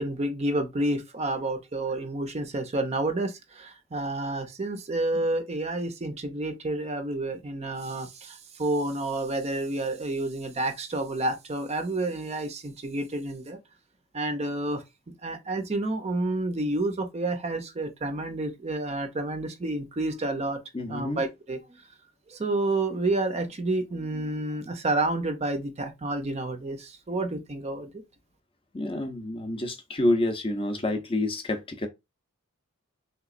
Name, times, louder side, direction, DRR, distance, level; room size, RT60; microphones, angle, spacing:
voice 1, 0.0-13.6 14.1-14.8 15.2-20.6 20.9-21.8 22.3-28.0, right 2 dB, 30° right, 0.5 m, -29 dB
voice 2, 20.7-21.2 28.7-31.9, left 1 dB, 25° left, 0.5 m, -28 dB
3.4 x 2.9 x 2.4 m
head